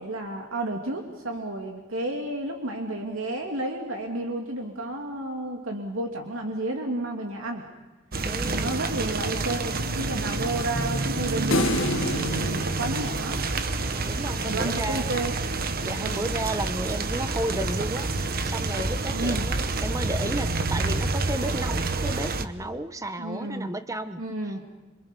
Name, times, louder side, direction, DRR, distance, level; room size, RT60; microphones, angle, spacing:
voice 1, 0.0-7.7 8.5-11.7 12.5-13.4 14.3-15.3 16.0-16.2 19.1-19.5 23.2-23.7 24.2-24.6, right 1 dB, 75° right, 2 dB, 2.8 m, -31 dB
sound 1, 8.1-22.5, right 3 dB, 45° right, 1.1 m, -28 dB
voice 2, 8.2-8.8 13.9-15.2 15.8-24.5, right 1 dB, 15° right, 10 dB, 1.0 m, -33 dB
sound 2, 11.5-13.9, left 2 dB, 65° left, 1.5 m, -29 dB
27.5 x 25.5 x 5.4 m, 1.2 s
head